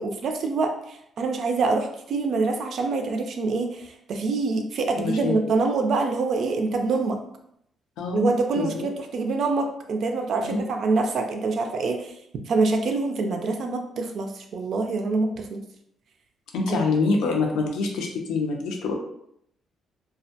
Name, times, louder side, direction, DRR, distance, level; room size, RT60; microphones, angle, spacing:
voice 1, 0.0-7.2 8.1-12.1 12.5-15.6 16.7-16.8, right 3 dB, 65° right, 5 dB, 0.4 m, -25 dB
voice 2, 5.0-5.4 8.0-8.3 8.6-8.9 10.4-10.6 16.5-18.9, left 4 dB, 90° left, 1 dB, 0.5 m, -25 dB
2.2 x 2.1 x 2.7 m, 0.74 s
cardioid pair, 90°, 0 cm